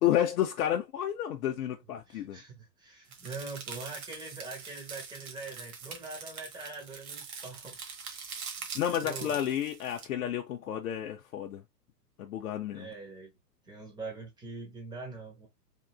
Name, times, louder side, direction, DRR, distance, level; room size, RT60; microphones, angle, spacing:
voice 1, 0.0-2.4 8.7-11.6 12.2-12.9, left 11 dB, 65° left, 0.7 m, -31 dB
voice 2, 2.1-7.8 8.6-8.7 9.0-9.4 12.7-13.4 13.7-15.5, right 3 dB, 10° right, 1.1 m, -43 dB
sound 1, 3.1-10.1, right 5 dB, 60° right, 1.3 m, -43 dB
3.6 x 2.5 x 2.3 m
hypercardioid pair, 125°, 49 cm